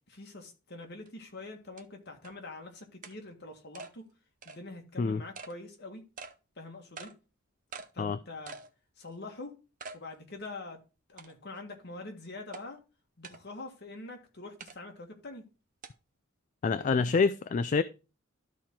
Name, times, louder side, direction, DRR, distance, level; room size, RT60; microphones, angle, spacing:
voice 1, 0.1-4.0 4.5-6.1 6.6-7.1 7.9-8.6 9.0-9.5 9.9-10.8 11.1-12.8 13.2-15.5 16.8-17.1, left 2 dB, 55° left, 1.8 m, -44 dB
sound 1, 1.1-1.2 1.8-1.9 2.2-2.3 3.0-3.2 3.7-3.9 4.4-4.6 5.3-5.5 6.2-6.3 7.0-7.1 7.7-7.9 8.5-8.7 9.1-9.2 9.8-10.0 10.4-10.5 11.2-11.6 12.5-12.6 13.2-13.4 14.6-14.8 15.8-15.9, right 4 dB, 40° right, 0.7 m, -45 dB
voice 2, 16.6-17.8, left 4 dB, 40° left, 0.3 m, -26 dB
12.5 x 4.4 x 3.7 m
head